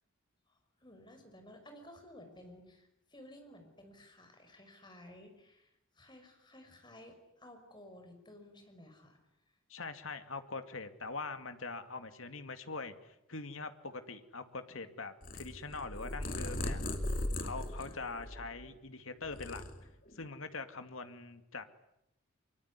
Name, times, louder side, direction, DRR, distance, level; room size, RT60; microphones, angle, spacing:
voice 1, 0.5-9.2 17.8-18.0, left 1 dB, 20° left, 5 dB, 5.6 m, -55 dB
voice 2, 9.7-16.8 17.4-19.6 20.1-21.6, left 3 dB, 75° left, 8 dB, 2.4 m, -43 dB
Purr, 15.2-18.8 19.1-20.2, left 1 dB, 40° left, 2.8 m, -38 dB
24.5 x 24.5 x 9.7 m, 0.83 s
head